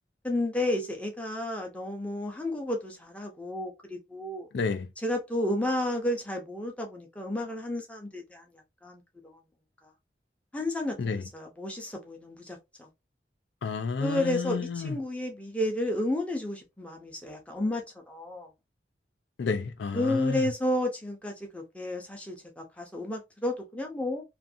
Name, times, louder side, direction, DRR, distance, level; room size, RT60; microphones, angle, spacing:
voice 1, 0.2-4.5 5.0-8.4 8.8-9.0 10.5-12.9 14.0-18.5 19.9-24.2, left 1 dB, 10° left, 0.6 m, -32 dB
voice 2, 4.5-4.9 11.0-11.2 13.6-14.9 19.4-20.4, left 4 dB, 90° left, 0.4 m, -30 dB
2.5 x 2.5 x 2.5 m
head